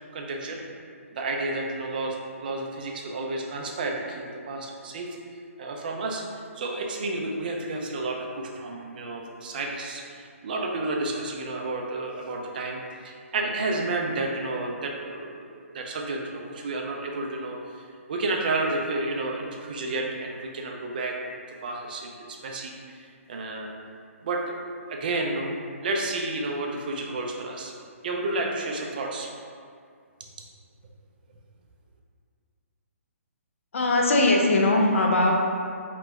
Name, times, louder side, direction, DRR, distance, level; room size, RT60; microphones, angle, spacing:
voice 1, 0.1-0.6 1.2-5.1 5.6-6.2 6.5-23.0 23.3-23.7 24.2-24.4 24.9-25.5 25.8-27.7 28.0-29.3, right 2 dB, 40° right, 1 dB, 0.4 m, -31 dB
voice 2, 33.7-35.3, left 2 dB, 65° left, 0 dB, 0.5 m, -20 dB
2.9 x 2.0 x 3.4 m, 2.2 s
hypercardioid pair, 165°, 8 cm